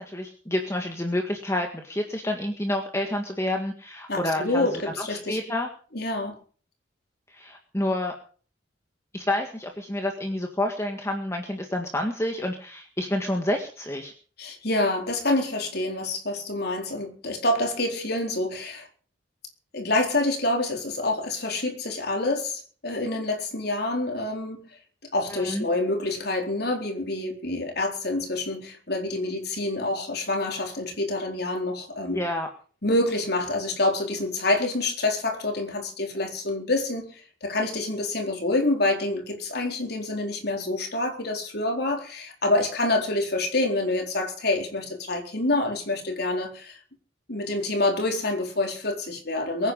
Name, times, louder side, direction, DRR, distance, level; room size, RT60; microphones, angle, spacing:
voice 1, 0.0-4.7 5.1-5.7 7.3-8.1 9.1-14.1 25.3-25.7 32.1-32.5, left 1 dB, 15° left, 1.8 m, -29 dB
voice 2, 4.1-5.4 5.9-6.4 14.4-18.9 19.7-24.7 25.1-32.2 32.8-46.8 47.3-49.7, left 2 dB, 55° left, 4.2 m, -27 dB
23.0 x 9.7 x 5.5 m
head